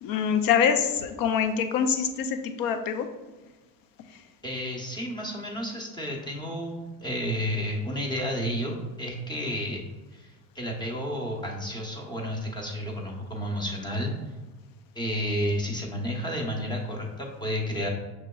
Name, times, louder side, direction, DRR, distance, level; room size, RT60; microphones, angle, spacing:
voice 1, 0.0-3.1 4.1-4.2, left 7 dB, 55° left, 8 dB, 0.6 m, -25 dB
voice 2, 4.4-9.8 10.1-14.1 14.9-17.9, equal, 10° left, -1 dB, 0.9 m, -31 dB
5.5 x 3.0 x 2.3 m, 1.2 s
supercardioid pair, 95°, 41 cm